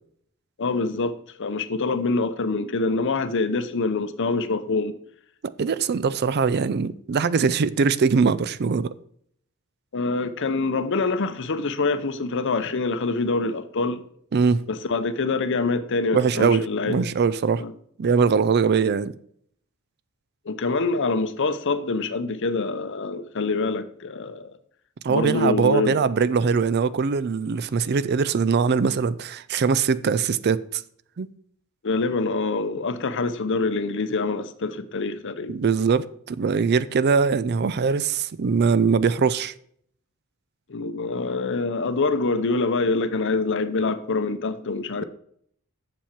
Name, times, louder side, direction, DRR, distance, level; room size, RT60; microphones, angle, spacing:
voice 1, 0.6-5.0 9.9-14.0 14.7-17.1 17.6-17.7 20.5-24.5 25.1-26.1 31.8-35.6 40.7-45.0, left 3 dB, 60° left, 0.7 m, -25 dB
voice 2, 5.6-8.9 14.3-14.7 16.1-17.6 18.0-19.1 25.0-30.8 31.2-31.3 35.5-39.5, right 5 dB, 50° right, 0.4 m, -22 dB
7.4 x 7.1 x 4.4 m
head